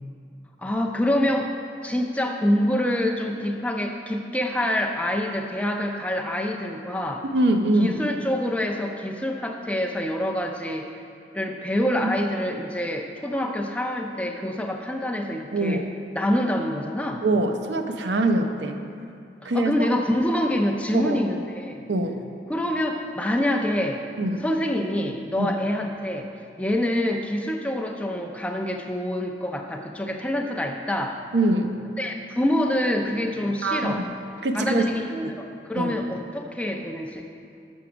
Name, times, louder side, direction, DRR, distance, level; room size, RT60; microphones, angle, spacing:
voice 1, 0.6-1.5 1.8-7.2 7.8-10.9 11.3-15.8 16.1-17.2 19.4-21.9 22.5-24.0 24.4-26.3 26.6-31.2 32.0-34.0 34.5-37.2, left 1 dB, 5° left, 2 dB, 0.4 m, -26 dB
voice 2, 7.3-8.0 15.5-15.8 17.2-18.8 19.4-19.9 20.9-21.2 21.9-22.2 24.2-24.4 25.4-25.5 31.3-31.8 33.6-34.1 34.4-34.9 35.2-35.3 35.8-36.0, right 2 dB, 80° right, 5 dB, 0.6 m, -23 dB
6.8 x 6.2 x 6.0 m, 2.6 s
head